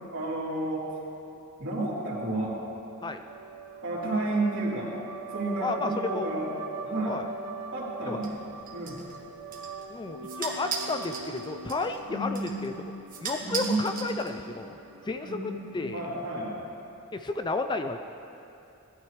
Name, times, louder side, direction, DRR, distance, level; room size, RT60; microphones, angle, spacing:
voice 1, 0.1-0.9 1.6-2.6 3.8-4.9 5.3-6.5 6.8-7.2 7.7-8.3 8.7-9.0 12.1-12.6 13.4-13.7 14.0-14.3 15.2-15.6 15.9-16.5, right 2 dB, 60° right, -7 dB, 3.3 m, -31 dB
sound 1, 3.3-16.3, right 4 dB, 85° right, 0.8 m, -42 dB
voice 2, 5.6-6.3 7.0-7.3 8.1-8.2 9.9-12.7 13.2-14.8 15.0-16.0 17.1-18.0, left 3 dB, 20° left, 7 dB, 0.3 m, -32 dB
sound 2, 8.2-14.7, right 4 dB, 40° right, 1.6 m, -39 dB
19.0 x 12.0 x 3.3 m, 2.7 s
head